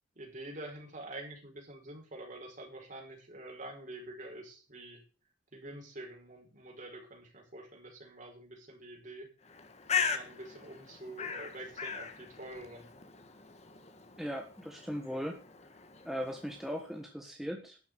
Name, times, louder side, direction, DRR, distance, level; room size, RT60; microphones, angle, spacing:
voice 1, 0.1-5.0 5.5-9.3 10.0-12.9, right 1 dB, 40° right, 1 dB, 5.1 m, -47 dB
Bird, 9.4-17.0, left 6 dB, 35° left, 1.7 m, -39 dB
voice 2, 14.2-15.4 16.0-17.8, equal, ahead, 2 dB, 1.5 m, -38 dB
12.0 x 7.1 x 8.4 m, 0.37 s
head